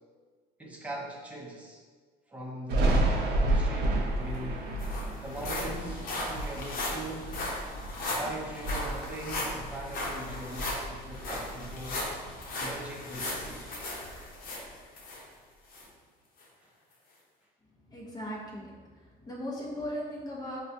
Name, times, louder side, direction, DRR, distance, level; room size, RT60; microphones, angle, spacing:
voice 1, 0.6-1.8 2.3-4.7 5.2-7.4 8.1-12.1 12.6-13.7 15.8-15.9 16.6-16.7, right 1 dB, 10° right, -2 dB, 0.7 m, -41 dB
Thunder, 2.7-8.1 8.5-9.9 10.2-11.9, right 1 dB, 80° right, 0.7 m, -30 dB
sound 1, 4.0-4.1 4.3-15.2 15.7-15.8 16.4-16.5, left 1 dB, 60° left, 0.9 m, -37 dB
voice 2, 17.9-20.6, equal, 20° left, -4 dB, 0.8 m, -38 dB
5.3 x 2.2 x 2.7 m, 1.5 s
cardioid pair, 110°, 17 cm